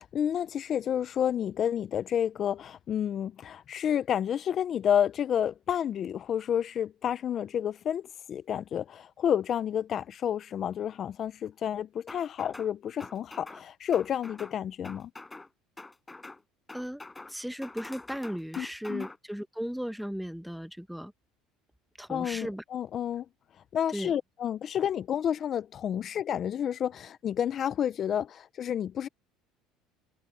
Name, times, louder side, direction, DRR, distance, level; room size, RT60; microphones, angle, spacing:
voice 1, 0.0-15.1 18.6-19.1 22.1-23.2 23.7-29.1, left 9 dB, 45° left, 0.8 m, -30 dB
sound 1, 12.1-12.7 13.0-13.6 13.9-14.6 14.8-15.5 15.8-16.4 16.7-17.3 17.6-19.2, left 2 dB, 15° left, 6.3 m, -45 dB
voice 2, 17.3-21.1 22.0-22.6 23.9-24.1, equal, ahead, 1.2 m, -36 dB
supercardioid pair, 95°, 0 cm